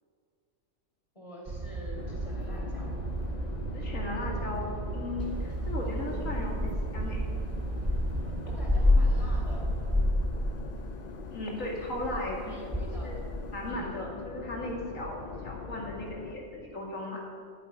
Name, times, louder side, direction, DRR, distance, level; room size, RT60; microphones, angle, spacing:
voice 1, 1.1-2.9 5.8-6.5 8.4-9.7 12.4-13.2 13.7-13.9, equal, 25° left, -2 dB, 4.1 m, -46 dB
sound 1, 1.5-10.0, right 3 dB, 40° right, 0.5 m, -35 dB
sound 2, 2.0-16.4, left 5 dB, 45° left, 0.6 m, -42 dB
voice 2, 3.7-7.3 11.3-12.6 13.0-13.2 13.5-17.2, left 1 dB, 90° left, -1 dB, 2.7 m, -36 dB
sound 3, 5.2-11.4 11.6-13.7, left 2 dB, 10° right, 1.8 m, -29 dB
12.0 x 9.8 x 9.8 m, 2.3 s
omnidirectional pair, 1.3 m